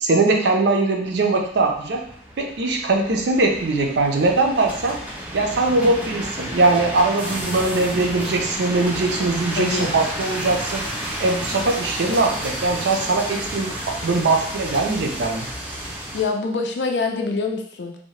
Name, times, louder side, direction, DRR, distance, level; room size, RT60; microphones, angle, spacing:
voice 1, 0.0-2.0 2.4-5.0 5.3-10.8 11.2-15.5, right 3 dB, 70° right, 2 dB, 0.5 m, -21 dB
sound 1, 1.0-16.2, right 1 dB, 10° right, 0.5 m, -31 dB
voice 2, 5.8-6.1 9.6-10.0 16.1-18.0, left 4 dB, 70° left, 4 dB, 0.4 m, -25 dB
2.7 x 2.1 x 3.0 m, 0.64 s
head